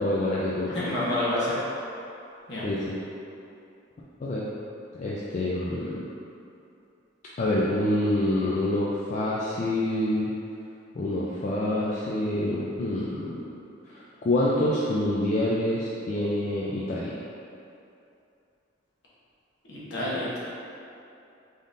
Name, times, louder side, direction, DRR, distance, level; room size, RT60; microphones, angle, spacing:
voice 1, 0.0-0.8 2.6-3.0 4.2-4.5 5.0-6.0 7.4-10.3 11.0-13.4 13.9-17.2, left 1 dB, 40° left, -7 dB, 0.3 m, -27 dB
voice 2, 0.7-1.6 2.5-2.7 19.6-20.4, left 1 dB, 60° left, -8 dB, 1.1 m, -28 dB
3.8 x 3.6 x 2.6 m, 2.7 s
head